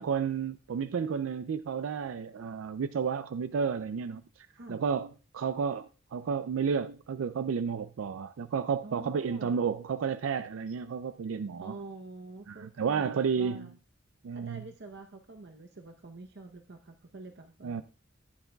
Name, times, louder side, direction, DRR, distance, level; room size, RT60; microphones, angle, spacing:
voice 1, 0.0-11.7 12.5-13.7 14.2-14.6 17.6-17.8, right 6 dB, 80° right, 0.4 m, -32 dB
voice 2, 4.5-4.8 8.8-9.5 11.6-13.7 14.3-17.8, right 2 dB, 60° right, 0.8 m, -46 dB
14.5 x 9.4 x 2.3 m
head